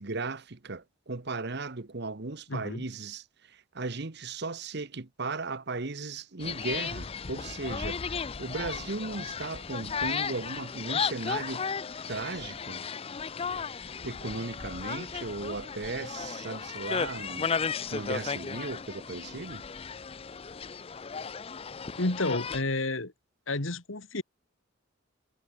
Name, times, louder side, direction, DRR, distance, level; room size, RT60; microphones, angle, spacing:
voice 1, 0.0-11.6 12.1-12.8 14.0-17.5 17.9-19.6, right 3 dB, 55° right, 1.2 m, -36 dB
voice 2, 2.5-2.9 22.0-23.1 23.5-24.2, left 2 dB, 70° left, 2.2 m, -30 dB
sound 1, 6.4-22.6, left 6 dB, 30° left, 0.5 m, -35 dB
head